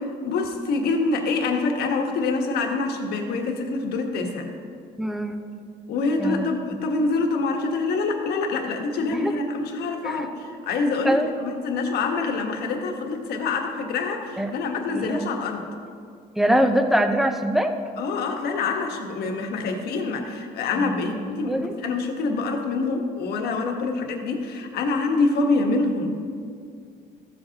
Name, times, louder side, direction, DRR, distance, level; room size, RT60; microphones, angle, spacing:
voice 1, 0.0-4.5 5.9-15.6 18.0-26.2, left 3 dB, 70° left, 3 dB, 1.3 m, -26 dB
voice 2, 5.0-5.4 6.2-6.5 9.1-9.3 10.0-10.3 11.0-11.3 14.4-14.5 14.9-15.2 16.4-17.7 20.8-21.7, equal, ahead, 6 dB, 0.7 m, -23 dB
14.0 x 7.6 x 2.9 m, 2.3 s
cardioid pair, 110°, 17 cm